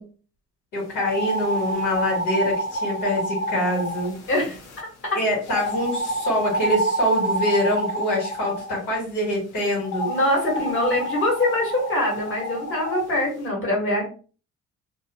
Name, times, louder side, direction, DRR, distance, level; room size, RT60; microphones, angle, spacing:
voice 1, 0.7-4.1 5.1-10.1, left 1 dB, 85° left, -2 dB, 1.5 m, -25 dB
sound 1, 0.9-4.8 5.5-8.8 9.8-13.1, right 1 dB, 60° left, 0.7 m, -28 dB
voice 2, 10.1-14.1, left 1 dB, 40° left, -1 dB, 1.4 m, -23 dB
2.5 x 2.1 x 2.7 m, 0.37 s
cardioid pair, 90°, 30 cm